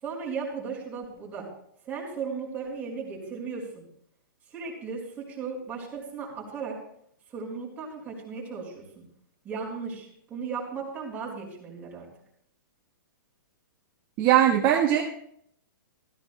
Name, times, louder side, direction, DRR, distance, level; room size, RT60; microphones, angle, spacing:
voice 1, 0.0-1.5 1.8-3.8 4.5-6.7 7.3-9.0 9.4-12.1, right 5 dB, 15° right, -4 dB, 4.8 m, -36 dB
voice 2, 14.2-15.0, right 11 dB, 30° right, -1 dB, 1.2 m, -20 dB
16.5 x 14.5 x 2.2 m, 0.67 s
hypercardioid pair, 150°, 11 cm